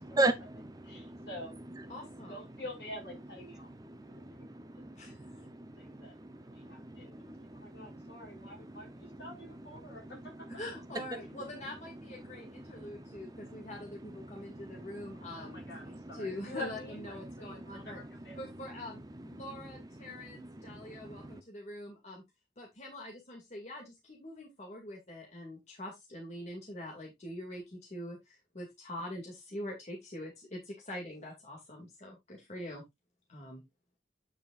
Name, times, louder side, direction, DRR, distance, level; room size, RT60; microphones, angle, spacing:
voice 1, 0.2-1.3 3.8-8.4 8.7-8.8 12.6-13.7 14.2-15.2 15.8-16.1 17.5-17.8 20.4-21.4, right 2 dB, 20° right, 0.8 m, -38 dB
voice 2, 0.8-1.5 2.3-3.7 4.1-4.5 5.3-6.1 6.5-10.5 15.4-18.8, left 1 dB, 65° left, 6.2 m, -47 dB
voice 3, 1.9-2.4 4.9-5.3 10.6-15.6 16.1-18.0 18.4-22.2 22.6-32.8 33.3-33.6, left 1 dB, 40° left, 2.4 m, -44 dB
8.9 x 6.5 x 2.5 m
head